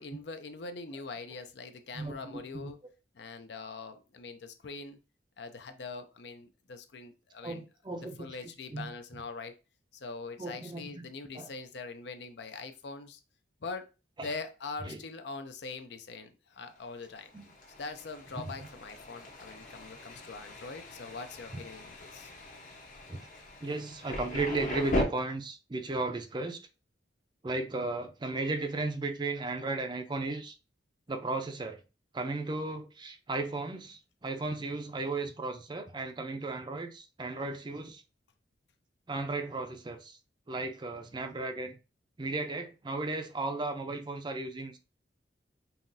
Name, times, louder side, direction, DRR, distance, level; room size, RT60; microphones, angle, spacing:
voice 1, 0.0-2.8 3.1-5.0 5.4-7.6 8.2-9.5 9.9-13.2 13.6-13.9 14.2-17.3 17.8-22.3, left 4 dB, 65° left, 0.5 m, -43 dB
voice 2, 1.9-2.7 7.4-8.9 10.4-11.1 11.3-11.5 14.2-14.3 14.8-15.0 17.3-17.5 18.4-18.5 23.1-23.3 23.6-26.6 27.4-30.6 31.1-31.8 32.1-38.0 39.1-40.2 40.5-41.8 42.2-44.8, right 3 dB, 25° right, 0.4 m, -35 dB
Thunder, 16.9-25.0, left 1 dB, 45° left, 0.8 m, -39 dB
5.6 x 2.4 x 2.6 m
head